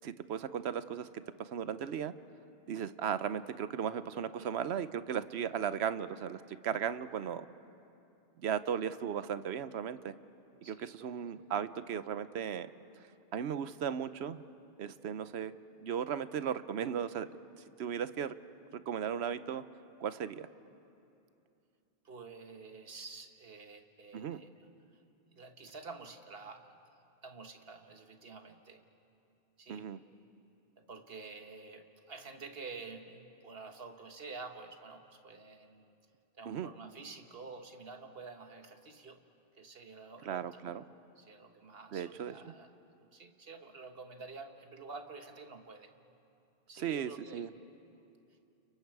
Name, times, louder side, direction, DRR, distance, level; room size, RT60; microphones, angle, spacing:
voice 1, 0.0-1.1 1.4-2.1 2.7-7.5 8.4-10.1 10.7-12.7 13.3-14.4 14.8-15.5 15.8-17.3 17.8-18.3 18.7-19.6 20.0-20.5 24.1-24.4 29.7-30.0 36.5-36.7 40.3-40.8 41.9-42.5 46.7-47.5, right 8 dB, 90° right, 13 dB, 1.0 m, -36 dB
voice 2, 22.0-24.7 24.9-25.0 25.3-26.7 27.2-28.8 29.6-29.9 30.8-35.9 36.3-39.2 39.6-40.8 41.2-42.7 43.1-45.9 46.7-47.5, right 4 dB, 65° right, 5 dB, 1.5 m, -49 dB
30.0 x 30.0 x 4.8 m, 2.7 s
omnidirectional pair, 1.1 m